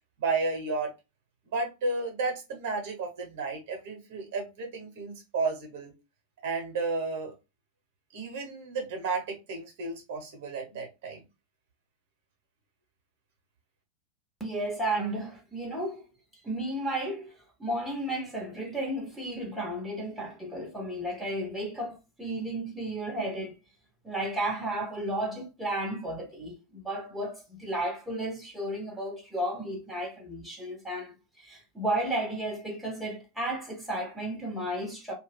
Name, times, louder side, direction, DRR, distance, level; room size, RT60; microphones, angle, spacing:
voice 1, 0.2-0.9 1.5-5.9 6.4-7.3 8.1-11.2, right 3 dB, 50° right, 0.9 m, -32 dB
voice 2, 14.4-16.0 16.4-23.5 24.0-35.1, right 1 dB, 5° right, 0.8 m, -33 dB
2.3 x 2.1 x 3.3 m
figure-of-eight pair, 90°, 0 cm